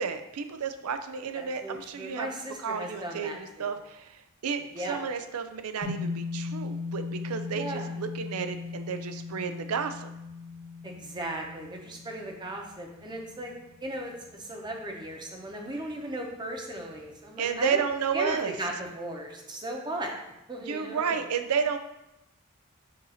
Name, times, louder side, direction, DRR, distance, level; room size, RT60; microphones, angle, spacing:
voice 1, 0.0-2.3 2.6-10.1 17.4-18.5 20.6-21.8, right 6 dB, 85° right, 9 dB, 0.5 m, -32 dB
voice 2, 1.3-3.7 4.7-5.0 7.5-7.9 10.8-13.5 13.8-17.8 18.1-20.2 20.5-21.2, right 1 dB, 20° right, 0 dB, 0.9 m, -37 dB
sound 1, 5.8-14.3, left 4 dB, 60° left, 2.2 m, -38 dB
6.6 x 2.7 x 5.6 m, 0.90 s
head